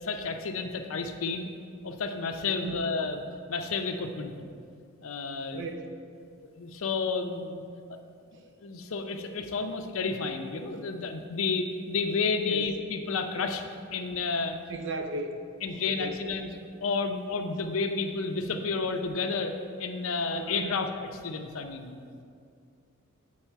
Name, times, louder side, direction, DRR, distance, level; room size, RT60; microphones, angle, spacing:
voice 1, 0.0-1.5 1.8-3.2 3.5-4.3 5.0-5.6 6.6-7.6 7.9-8.0 8.3-13.6 13.9-14.6 15.6-21.9, left 4 dB, 75° left, 6 dB, 0.6 m, -31 dB
voice 2, 2.4-2.8 5.5-5.9 12.5-12.6 14.7-15.5 15.8-16.3 20.3-20.8, right 2 dB, 60° right, 6 dB, 0.6 m, -36 dB
8.6 x 4.8 x 4.5 m, 2.3 s
head